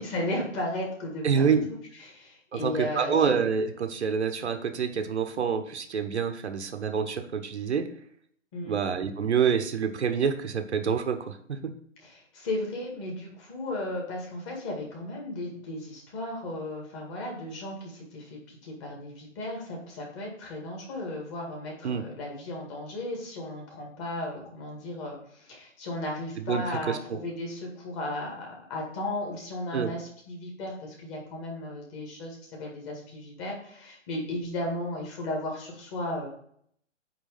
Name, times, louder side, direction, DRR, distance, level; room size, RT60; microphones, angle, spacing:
voice 1, 0.0-3.3 8.5-8.8 12.0-36.3, left 1 dB, 25° left, -2 dB, 2.0 m, -35 dB
voice 2, 1.2-1.7 2.5-7.9 8.7-11.6 21.8-22.0 26.4-27.0 29.7-29.9, right 6 dB, 60° right, 6 dB, 1.0 m, -27 dB
9.3 x 3.3 x 4.9 m, 0.65 s
hypercardioid pair, 150°, 37 cm